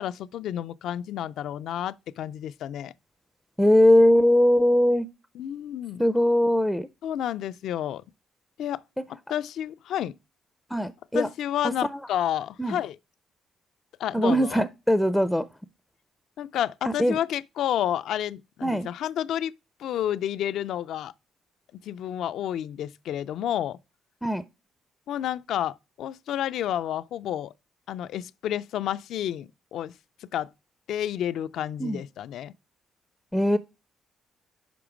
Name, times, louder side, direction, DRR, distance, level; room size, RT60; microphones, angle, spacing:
voice 1, 0.0-2.9 5.4-6.0 7.0-8.0 8.6-8.8 9.1-10.2 11.1-13.0 14.0-14.6 16.4-19.5 19.8-21.1 21.8-23.8 25.1-27.5 27.9-29.9 30.2-30.5 30.9-32.5, left 11 dB, 80° left, 0.3 m, -30 dB
voice 2, 3.6-5.1 6.0-6.9 10.7-11.3 11.6-12.0 12.6-12.8 14.1-15.5 16.8-17.2 18.6-18.9 24.2-24.4 31.8-32.0 33.3-33.6, left 1 dB, ahead, 0.4 m, -21 dB
6.0 x 5.1 x 4.9 m
cardioid pair, 90°, 0 cm